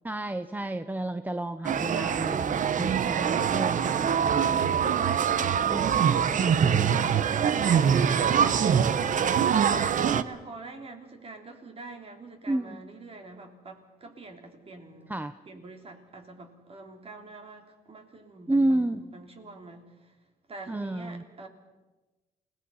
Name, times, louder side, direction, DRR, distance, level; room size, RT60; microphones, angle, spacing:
voice 1, 0.0-5.0 5.7-7.1 12.5-12.8 15.1-15.3 18.5-19.0 20.7-21.2, right 1 dB, 10° right, 11 dB, 0.7 m, -31 dB
sound 1, 1.6-10.2, right 8 dB, 55° right, 0.9 m, -24 dB
voice 2, 7.1-20.2 20.5-21.5, right 3 dB, 40° right, 4 dB, 3.4 m, -45 dB
28.5 x 18.5 x 5.7 m, 1.2 s
cardioid pair, 110°, 16 cm